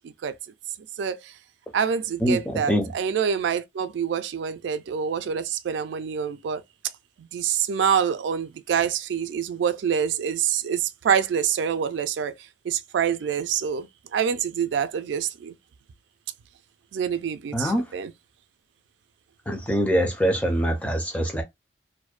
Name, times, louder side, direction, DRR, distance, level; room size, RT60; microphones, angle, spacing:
voice 1, 1.0-1.3 1.7-6.6 7.2-12.3 12.6-15.5 16.9-18.1, right 7 dB, 80° right, 0.3 m, -26 dB
voice 2, 2.2-2.9 17.5-17.8 19.5-21.4, equal, 10° left, 0.4 m, -24 dB
2.5 x 2.1 x 2.3 m
head